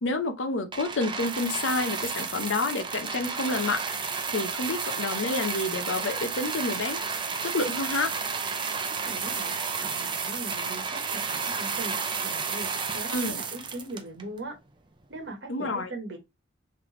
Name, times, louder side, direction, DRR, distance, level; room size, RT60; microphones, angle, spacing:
voice 1, 0.0-7.0 7.4-8.1 13.1-13.4 15.5-15.9, left 2 dB, 70° left, 0.7 m, -29 dB
sound 1, 0.7-14.4 15.2-15.3, right 5 dB, 25° right, 0.5 m, -32 dB
voice 2, 8.9-9.5 9.8-12.0 12.2-14.5 15.1-16.2, right 2 dB, 60° right, 1.2 m, -40 dB
3.4 x 3.3 x 3.7 m
head